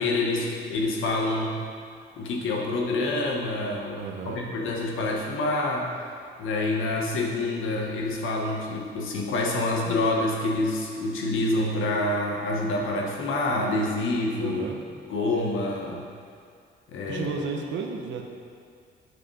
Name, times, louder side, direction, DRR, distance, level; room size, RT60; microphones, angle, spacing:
voice 1, 0.0-1.6 2.2-5.9 6.4-14.6 15.1-16.0 16.9-17.3, left 2 dB, 85° left, -1 dB, 1.3 m, -27 dB
voice 2, 4.0-4.4 14.4-14.8 17.1-18.2, right 5 dB, 70° right, 3 dB, 1.0 m, -33 dB
8.2 x 5.1 x 4.8 m, 2.2 s
cardioid pair, 90°, 20 cm